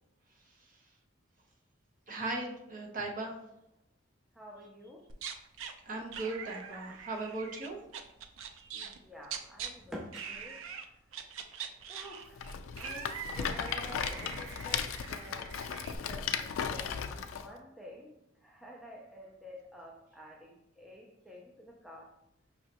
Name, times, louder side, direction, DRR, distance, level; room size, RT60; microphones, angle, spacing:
voice 1, 2.1-3.3 5.8-7.8 8.6-8.7, right 2 dB, 40° right, 0 dB, 0.7 m, -38 dB
voice 2, 4.3-5.1 8.7-11.0 11.9-15.5 15.9-16.9 17.3-22.1, equal, ahead, -2 dB, 0.4 m, -49 dB
sound 1, 5.1-5.7 6.1-9.7 10.1-10.8 11.1-16.0, right 7 dB, 85° right, 0.4 m, -43 dB
Rattle, 12.4-17.5, left 7 dB, 90° left, 0.4 m, -36 dB
5.5 x 2.9 x 2.9 m, 0.84 s
head